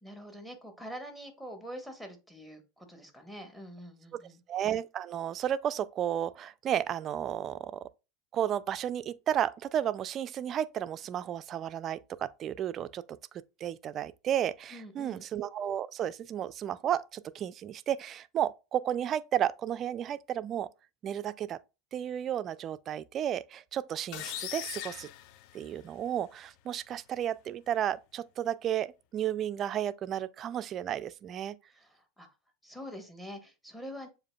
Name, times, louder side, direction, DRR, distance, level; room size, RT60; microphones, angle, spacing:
voice 1, 0.0-4.4 14.7-15.2 31.7-32.3 32.6-34.1, equal, 5° left, 1.2 m, -45 dB
voice 2, 4.5-7.9 8.3-13.0 13.6-20.7 21.0-21.6 21.9-25.1 25.5-31.6, right 10 dB, 40° right, 0.3 m, -33 dB
sound 1, 24.1-26.1, left 13 dB, 60° left, 0.3 m, -40 dB
7.3 x 2.5 x 2.2 m
hypercardioid pair, 85°, 0 cm